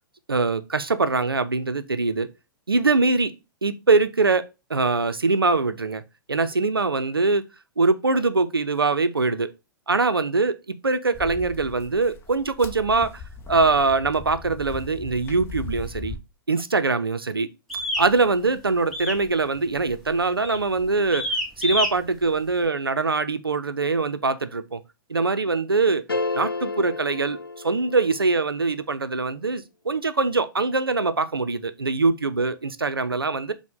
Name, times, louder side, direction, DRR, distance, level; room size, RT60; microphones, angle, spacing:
voice 1, 0.3-2.3 2.7-3.3 3.6-6.0 6.3-7.4 7.8-9.5 9.9-16.2 16.5-17.5 18.0-21.3 21.6-24.8 25.1-26.0 26.3-27.4 27.6-33.5, right 3 dB, 85° right, 0.4 m, -23 dB
sound 1, 11.1-16.2, left 4 dB, 20° left, 0.6 m, -38 dB
sound 2, 17.7-18.1 18.9-19.3 19.5-19.9 20.4-20.7 21.1-21.9, left 1 dB, ahead, 1.0 m, -27 dB
sound 3, 26.1-28.4, left 3 dB, 85° left, 0.5 m, -30 dB
5.7 x 2.1 x 3.6 m
figure-of-eight pair, 105°, 12 cm